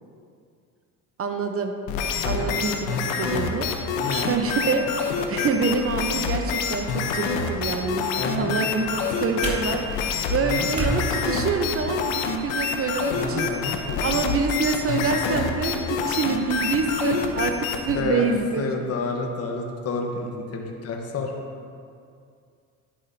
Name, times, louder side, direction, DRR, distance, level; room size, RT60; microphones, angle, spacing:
voice 1, 1.2-1.7 2.2-3.7 4.1-8.1 8.4-13.5 14.0-18.6, right 4 dB, 35° right, 6 dB, 0.8 m, -26 dB
sound 1, 1.9-18.0, left 6 dB, 90° left, 0.9 m, -27 dB
voice 2, 3.9-4.3 8.2-8.5 10.4-10.7 13.1-14.2 17.7-18.3 18.6-21.3, left 3 dB, 40° left, 1 dB, 1.2 m, -30 dB
sound 2, 8.3-12.3, equal, 20° right, 2.2 m, -34 dB
10.0 x 9.4 x 2.7 m, 2.3 s
supercardioid pair, 95°, 38 cm